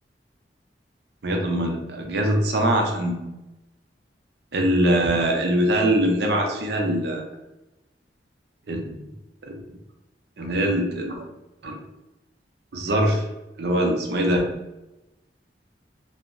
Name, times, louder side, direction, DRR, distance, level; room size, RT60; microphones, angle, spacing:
voice 1, 1.2-3.2 4.5-7.2 8.7-9.0 9.5-9.6 10.4-11.2 11.6-11.8 12.7-13.2 13.6-14.4, right 1 dB, 65° right, 2 dB, 0.5 m, -22 dB
2.7 x 2.0 x 2.5 m, 0.98 s
head